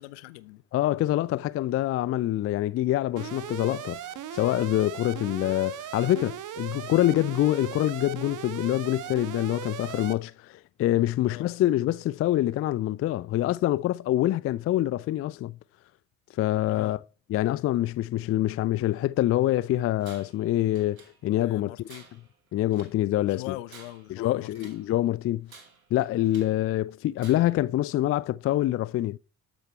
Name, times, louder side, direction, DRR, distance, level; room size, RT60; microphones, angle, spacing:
voice 1, 0.0-0.6 11.3-11.4 16.6-17.0 21.4-22.1 23.2-24.7, left 19 dB, 65° left, 0.9 m, -41 dB
voice 2, 0.7-4.0 4.3-15.6 16.4-17.0 17.3-21.9 22.5-23.6 24.1-25.5 25.9-29.2, left 14 dB, 35° left, 0.4 m, -25 dB
Alarm, 3.2-10.1, right 11 dB, 50° right, 1.1 m, -38 dB
Tools, 20.0-20.5 20.8-21.5 21.8-23.0 23.5-24.9 25.5-26.6 27.2-27.7, right 5 dB, 85° right, 1.4 m, -52 dB
12.5 x 7.9 x 4.4 m
figure-of-eight pair, 45°, 41 cm